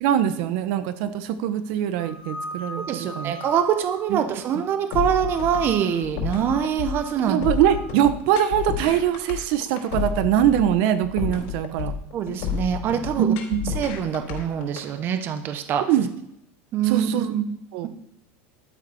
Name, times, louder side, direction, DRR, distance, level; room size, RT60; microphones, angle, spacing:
voice 1, 0.0-3.3 4.1-4.2 7.3-11.9 13.2-13.8 15.9-16.1 16.8-17.3 17.7-17.9, right 10 dB, 60° right, 11 dB, 1.1 m, -22 dB
sound 1, 2.0-4.9 5.2-6.0 6.4-7.9, equal, 15° left, 2.0 m, -39 dB
voice 2, 2.8-7.5 12.1-13.3 13.7-15.9 16.7-17.6, right 8 dB, 35° right, 9 dB, 1.0 m, -24 dB
sound 2, 4.9-14.8, left 8 dB, 75° left, 3.9 m, -30 dB
12.0 x 8.2 x 5.6 m, 0.79 s
supercardioid pair, 145°, 6 cm